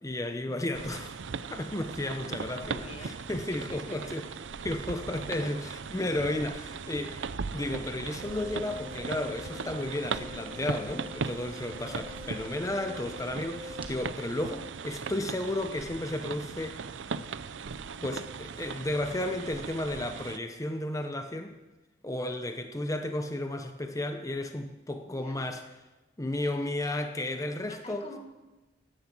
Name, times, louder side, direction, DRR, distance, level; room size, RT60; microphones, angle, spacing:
voice 1, 0.0-1.2 1.5-4.3 4.6-7.2 7.5-16.8 18.0-21.6 22.0-25.6 26.2-28.1, left 1 dB, 20° left, 6 dB, 0.8 m, -33 dB
sound 1, 0.7-20.4, right 5 dB, 85° right, 0.6 m, -39 dB
voice 2, 2.2-3.2 3.5-4.2 5.3-5.5 25.1-25.5 27.7-28.2, left 1 dB, 35° left, 3 dB, 2.0 m, -46 dB
sound 2, 8.2-13.9, left 3 dB, 30° right, 1.3 m, -45 dB
16.0 x 11.0 x 6.1 m, 1.1 s
head